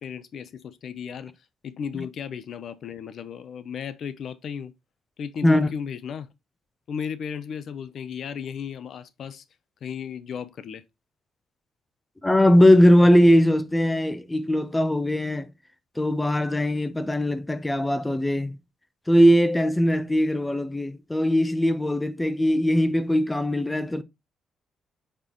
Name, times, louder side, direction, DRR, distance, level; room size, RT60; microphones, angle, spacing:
voice 1, 0.0-1.3 1.6-4.7 5.2-6.3 6.9-9.4 9.8-10.8, left 7 dB, 60° left, 0.7 m, -35 dB
voice 2, 12.2-15.5 16.0-18.6 19.1-24.0, equal, 10° left, 0.7 m, -20 dB
8.6 x 4.5 x 3.0 m
cardioid pair, 90°, 0 cm